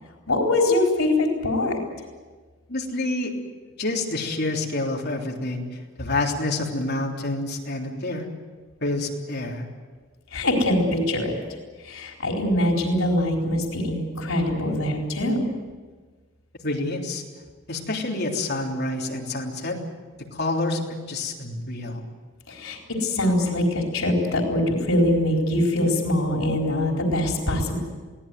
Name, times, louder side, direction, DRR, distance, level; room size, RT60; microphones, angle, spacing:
voice 1, 0.3-1.8 10.3-11.3 11.8-15.4 22.5-27.7, left 1 dB, 90° left, 1 dB, 4.3 m, -23 dB
voice 2, 2.7-3.3 3.8-5.6 6.0-8.3 8.8-9.6 16.6-17.2 17.7-19.8 20.3-22.0, left 2 dB, 50° left, 0 dB, 3.5 m, -28 dB
22.5 x 17.5 x 9.3 m, 1.4 s
head